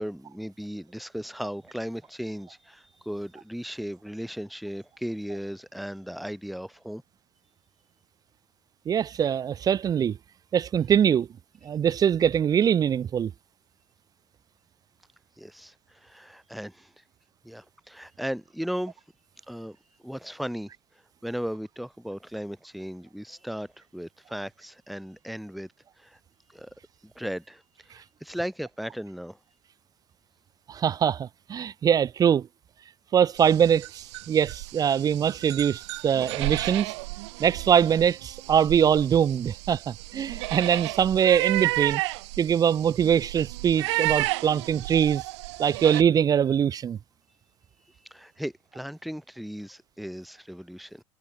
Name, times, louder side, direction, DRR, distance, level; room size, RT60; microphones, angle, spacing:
voice 1, 0.0-7.0 15.4-17.0 17.4-19.0 19.5-19.8 20.0-20.7 21.2-25.7 26.0-26.2 26.5-26.7 27.0-29.4 48.0-51.0, equal, ahead, 2.1 m, -36 dB
voice 2, 8.9-10.2 10.5-11.3 11.6-13.3 30.7-32.5 33.1-36.9 37.4-42.0 42.4-45.2 45.6-47.0, right 8 dB, 25° right, 0.4 m, -23 dB
sound 1, 33.4-46.0, right 22 dB, 60° right, 1.4 m, -32 dB
figure-of-eight pair, 80°, 16 cm